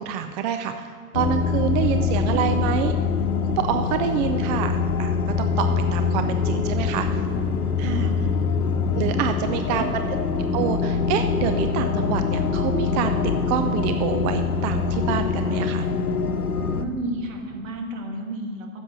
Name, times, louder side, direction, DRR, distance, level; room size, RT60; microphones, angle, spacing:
voice 1, 0.0-2.9 3.6-7.1 7.8-8.1 9.0-10.0 10.5-13.2 13.5-15.9, right 9 dB, 30° right, 7 dB, 0.5 m, -27 dB
sound 1, 1.1-16.9, left 5 dB, 80° left, 1.0 m, -24 dB
voice 2, 1.5-2.1 7.8-8.2 9.0-9.8 16.6-18.8, right 2 dB, 60° right, 2 dB, 2.3 m, -33 dB
9.9 x 7.2 x 8.0 m, 2.1 s
hypercardioid pair, 110°, 44 cm